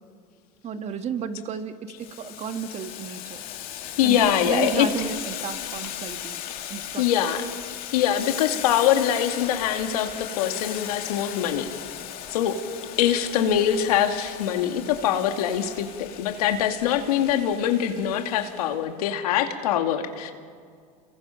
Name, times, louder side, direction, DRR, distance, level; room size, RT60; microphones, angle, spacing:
voice 1, 0.6-3.4 4.0-6.4 6.7-7.3, right 7 dB, 35° right, 8 dB, 1.5 m, -33 dB
Boiling, 2.0-18.8, left 11 dB, 50° left, 2.3 m, -37 dB
voice 2, 4.0-4.9 7.0-7.5 7.9-11.7 12.3-12.6 13.0-20.3, left 10 dB, 90° left, 5 dB, 2.2 m, -23 dB
30.0 x 23.0 x 5.8 m, 2.1 s
supercardioid pair, 120°, 19 cm